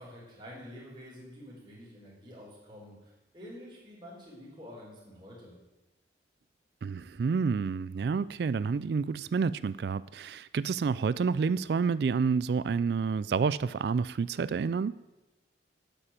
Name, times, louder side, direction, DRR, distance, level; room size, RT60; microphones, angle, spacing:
voice 1, 0.0-5.5, equal, 25° right, -6 dB, 4.2 m, -48 dB
voice 2, 6.8-15.0, right 5 dB, 60° right, 17 dB, 0.3 m, -29 dB
8.9 x 8.8 x 8.9 m, 1.0 s
head